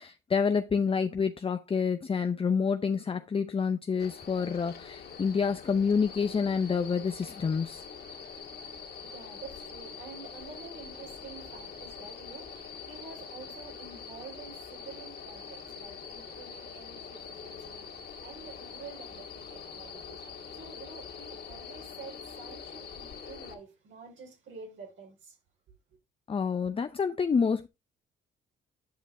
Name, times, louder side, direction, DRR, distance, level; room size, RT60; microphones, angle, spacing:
voice 1, 0.0-7.8 26.3-27.7, left 5 dB, 30° left, 0.6 m, -28 dB
sound 1, 4.0-23.5, left 6 dB, 55° left, 2.2 m, -44 dB
voice 2, 8.1-25.4, right 5 dB, 70° right, 5.0 m, -49 dB
10.0 x 5.2 x 3.7 m
cardioid pair, 90°, 20 cm